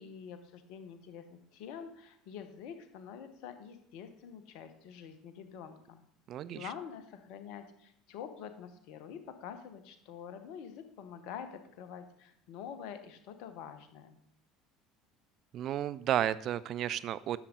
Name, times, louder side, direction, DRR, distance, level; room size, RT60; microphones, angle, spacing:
voice 1, 0.0-6.0 6.5-14.2, left 8 dB, 60° left, 9 dB, 1.0 m, -46 dB
voice 2, 6.3-6.7 15.5-17.4, right 11 dB, 50° right, 16 dB, 0.3 m, -32 dB
10.5 x 7.3 x 3.9 m, 0.72 s
figure-of-eight pair, 65°, 0 cm